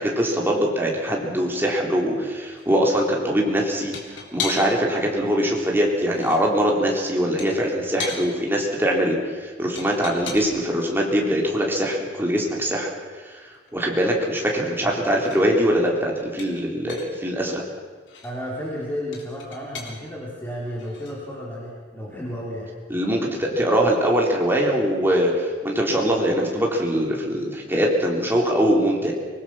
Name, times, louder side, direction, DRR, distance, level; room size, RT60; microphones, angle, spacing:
voice 1, 0.0-3.9 4.3-12.9 13.3-13.4 13.7-17.6 22.9-29.1, equal, 10° right, -1 dB, 3.7 m, -22 dB
sound 1, 2.6-2.7 3.9-4.9 5.8-6.4 7.4-8.3 9.8-10.7 12.5-12.6 12.9-13.0 13.3-14.8 15.0-15.5 16.4-17.2 18.0-18.4 19.1-20.0 20.8-21.2, left 5 dB, 75° left, 3.7 m, -36 dB
voice 2, 18.2-22.7, equal, 10° left, -5 dB, 4.1 m, -32 dB
25.0 x 19.5 x 6.3 m, 1.5 s
head